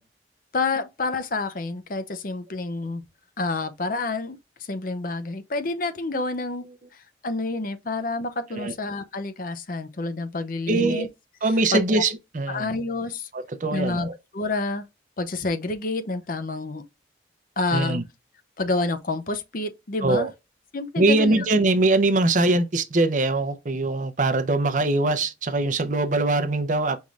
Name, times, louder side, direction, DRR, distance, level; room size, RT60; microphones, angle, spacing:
voice 1, 0.5-3.0 3.4-4.4 4.7-6.6 6.9-11.1 11.7-12.0 12.5-13.3 13.7-14.1 14.3-14.8 15.2-16.8 17.6-18.0 18.6-20.3 20.7-21.4, left 3 dB, 50° left, 0.6 m, -28 dB
voice 2, 10.7-11.1 11.4-12.7 13.3-14.2 17.7-18.0 20.0-20.3 21.0-27.1, right 2 dB, 45° right, 0.6 m, -22 dB
5.4 x 3.1 x 2.4 m
head